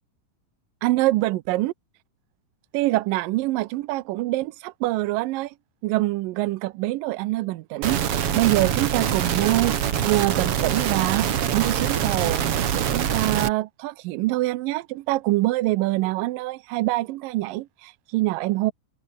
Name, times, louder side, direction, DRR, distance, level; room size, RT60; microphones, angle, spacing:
voice 1, 0.8-1.7 2.7-5.5 5.8-12.4 12.7-18.7, right 18 dB, 80° right, 2.2 m, -25 dB
sound 1, 7.8-13.5, right 9 dB, 50° right, 1.9 m, -24 dB
omnidirectional pair, 4.4 m